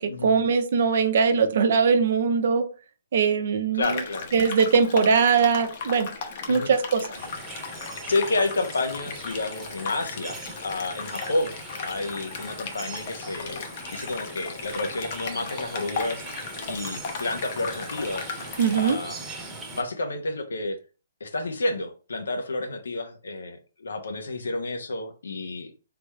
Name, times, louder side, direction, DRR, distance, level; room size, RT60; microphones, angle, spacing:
voice 1, 0.0-2.6 3.1-4.0 4.3-6.1 6.5-7.1 18.6-19.0, right 5 dB, 60° right, 0.6 m, -21 dB
voice 2, 3.7-4.3 6.5-6.7 8.0-11.5 11.9-16.2 16.7-18.3 18.7-19.2 19.7-20.8 21.2-25.7, left 2 dB, 80° left, 0.8 m, -30 dB
sound 1, 3.8-18.9, left 5 dB, 45° left, 0.8 m, -36 dB
sound 2, 7.1-19.8, right 3 dB, 10° right, 1.0 m, -41 dB
3.4 x 3.1 x 2.3 m
hypercardioid pair, 140°, 0 cm